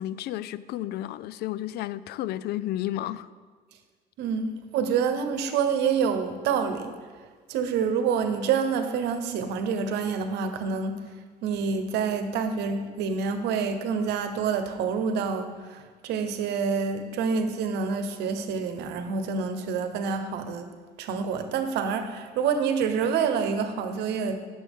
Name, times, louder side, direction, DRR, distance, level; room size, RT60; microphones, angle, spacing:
voice 1, 0.0-3.3, left 13 dB, 70° left, 0.4 m, -32 dB
voice 2, 4.2-6.9 7.5-11.0 11.4-20.7 21.0-24.3, right 6 dB, 80° right, 1.0 m, -27 dB
16.0 x 7.0 x 3.6 m
cardioid pair, 110°, 17 cm